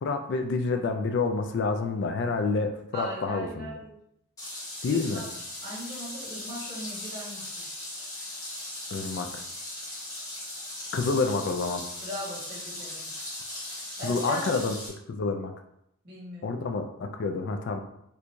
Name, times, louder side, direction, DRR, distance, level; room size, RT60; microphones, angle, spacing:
voice 1, 0.0-3.7 4.8-5.2 8.9-9.4 10.9-11.8 14.0-14.8 15.1-15.5 16.4-17.8, left 4 dB, 55° left, 6 dB, 0.3 m, -28 dB
voice 2, 2.9-3.9 4.8-5.2 5.6-7.6 12.0-13.1 14.0-14.6 16.0-16.6, equal, 50° right, -7 dB, 1.5 m, -39 dB
sound 1, 4.4-14.9, left 1 dB, 15° left, 0.9 m, -38 dB
4.4 x 2.3 x 2.5 m, 0.77 s
head